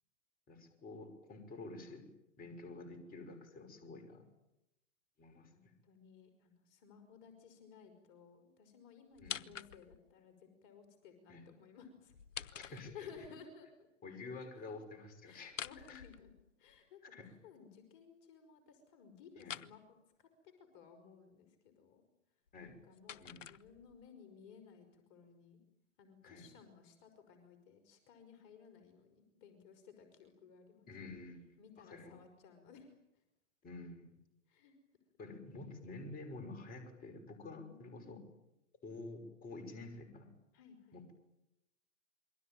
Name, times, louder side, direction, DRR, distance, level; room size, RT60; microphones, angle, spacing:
voice 1, 0.5-2.1 2.4-4.2 5.2-5.7 9.2-9.5 11.3-11.5 12.5-13.3 14.0-15.5 15.9-16.0 17.0-17.3 19.4-19.6 22.5-22.8 23.2-23.4 26.2-26.5 30.9-31.4 31.8-32.2 33.6-34.1 35.2-38.2 38.8-40.3 40.9-41.2, left 3 dB, 20° left, 6 dB, 5.9 m, -49 dB
voice 2, 5.5-12.2 12.6-13.9 15.3-16.3 16.6-19.8 20.2-22.0 22.6-25.6 26.0-30.9 31.6-32.9 34.5-34.7 37.5-38.2 40.5-41.0, left 6 dB, 40° left, 6 dB, 5.5 m, -58 dB
sound 1, 9.2-10.1 12.1-13.3 15.4-16.8 19.4-19.8 22.5-24.1, left 8 dB, 70° left, 1.1 m, -47 dB
27.5 x 23.5 x 9.2 m, 0.87 s
figure-of-eight pair, 115°, 39 cm